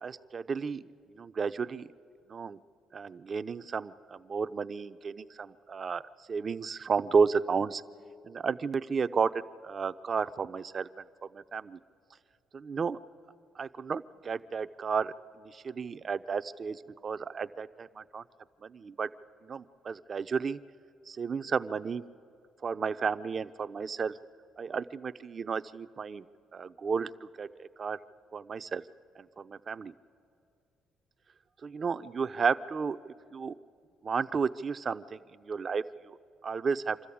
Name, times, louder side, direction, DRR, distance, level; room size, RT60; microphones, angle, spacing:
voice 1, 0.0-1.9 2.3-2.6 2.9-6.0 6.3-7.8 8.2-10.9 11.3-11.8 12.5-13.0 13.6-18.2 18.6-19.1 19.4-20.6 21.1-22.0 22.6-24.1 24.6-26.2 26.5-27.1 27.4-28.0 28.3-28.8 29.2-29.9 31.6-33.5 34.0-36.2 36.4-37.0, right 5 dB, 40° right, 12 dB, 0.6 m, -32 dB
26.5 x 13.5 x 8.6 m, 2.4 s
cardioid pair, 100°, 0 cm